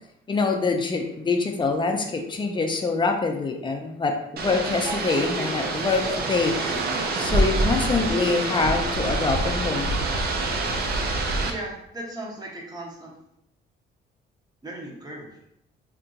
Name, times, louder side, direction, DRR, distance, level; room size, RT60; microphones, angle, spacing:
voice 1, 0.3-4.2 4.4-6.9 7.2-10.0, left 4 dB, 25° left, 3 dB, 0.5 m, -25 dB
sound 1, 4.4-11.5, right 2 dB, 50° right, 0.5 m, -26 dB
voice 2, 11.4-13.2 14.6-15.3, right 1 dB, 20° right, -1 dB, 0.8 m, -37 dB
2.8 x 2.6 x 2.5 m, 0.79 s
cardioid pair, 90°, 20 cm